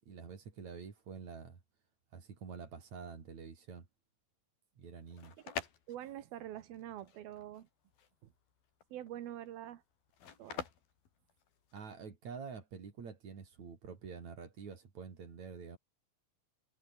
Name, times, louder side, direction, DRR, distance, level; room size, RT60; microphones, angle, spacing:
voice 1, 0.0-1.6 2.1-3.9 4.8-5.4 11.7-15.8, right 6 dB, 50° right, 4.4 m, -47 dB
sound 1, 4.9-12.0, left 7 dB, 75° left, 5.2 m, -47 dB
voice 2, 5.9-7.7 8.2-8.3 8.9-9.8 10.4-10.7, right 12 dB, 80° right, 3.4 m, -45 dB
omnidirectional pair, 4.3 m